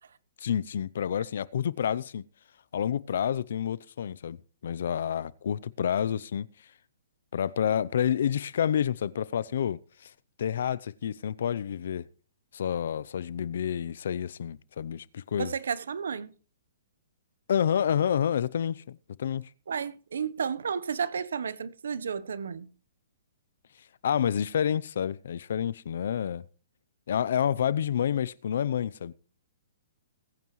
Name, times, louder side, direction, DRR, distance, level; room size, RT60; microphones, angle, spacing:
voice 1, 0.4-2.2 2.7-4.4 4.6-6.5 7.3-10.1 10.4-12.1 12.5-15.5 17.5-19.5 24.0-26.4 27.1-29.1, left 9 dB, 65° left, 0.6 m, -29 dB
voice 2, 15.3-16.3 19.7-22.7, right 6 dB, 80° right, 0.9 m, -32 dB
20.5 x 9.3 x 3.1 m
hypercardioid pair, 150°, 0 cm